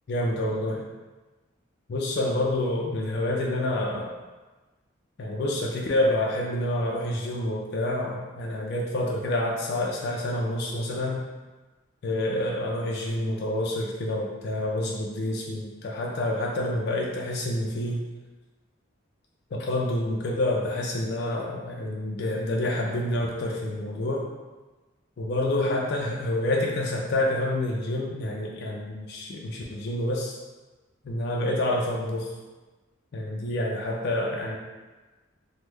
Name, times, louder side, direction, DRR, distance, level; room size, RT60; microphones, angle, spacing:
voice 1, 0.1-0.8 1.9-4.1 5.2-11.2 12.0-18.0 19.5-24.3 25.2-30.4 31.0-32.3 33.1-34.6, left 1 dB, 55° left, -2 dB, 0.4 m, -28 dB
3.1 x 2.0 x 3.3 m, 1.2 s
head